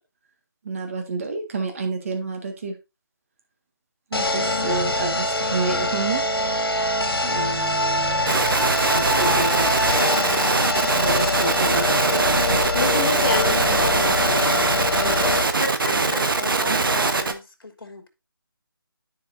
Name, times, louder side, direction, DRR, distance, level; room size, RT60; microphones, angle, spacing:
voice 1, 0.6-2.7 4.1-6.2 7.2-8.4 8.9-9.7 10.8-12.6 16.6-16.8, right 3 dB, 35° right, 1.7 m, -29 dB
sound 1, 4.1-15.4, left 2 dB, 90° left, 1.2 m, -24 dB
sound 2, 8.3-14.5, right 6 dB, 5° right, 0.5 m, -39 dB
sound 3, 8.3-17.3, right 3 dB, 65° right, 1.1 m, -22 dB
voice 2, 12.7-16.2, left 3 dB, 30° left, 1.4 m, -29 dB
voice 3, 15.8-18.1, left 3 dB, 65° left, 2.7 m, -36 dB
13.5 x 4.7 x 2.6 m
figure-of-eight pair, 165°, 12 cm